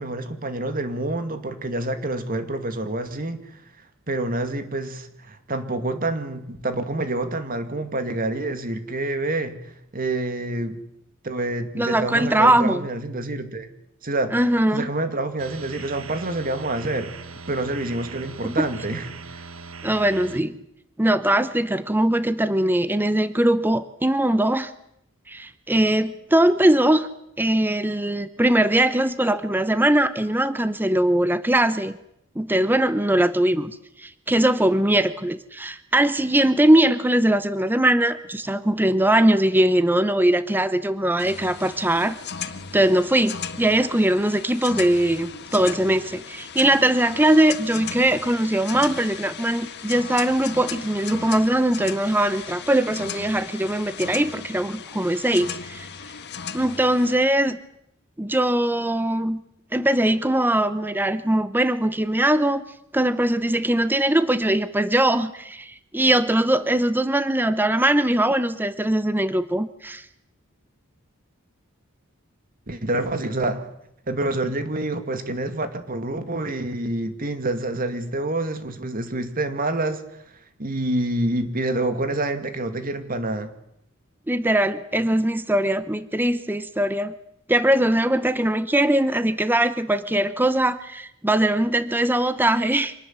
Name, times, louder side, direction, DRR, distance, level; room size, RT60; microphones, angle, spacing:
voice 1, 0.0-3.6 4.1-10.8 11.2-13.7 14.0-14.4 14.7-17.1 17.5-19.4 72.7-73.7 74.1-80.0 80.6-83.5, right 2 dB, 45° right, 8 dB, 2.4 m, -27 dB
voice 2, 11.8-12.9 14.3-14.9 18.4-18.6 19.8-20.6 21.0-24.7 25.3-27.1 27.4-32.0 32.4-42.2 42.7-55.9 56.5-57.6 58.2-59.4 59.7-62.6 62.9-70.0 84.3-87.1 87.5-92.9, right 1 dB, 10° right, 13 dB, 0.8 m, -21 dB
sound 1, 15.4-20.4, right 4 dB, 80° right, 1.3 m, -40 dB
sound 2, 41.2-57.2, left 7 dB, 55° left, 1.7 m, -36 dB
26.0 x 19.5 x 7.5 m, 0.78 s
head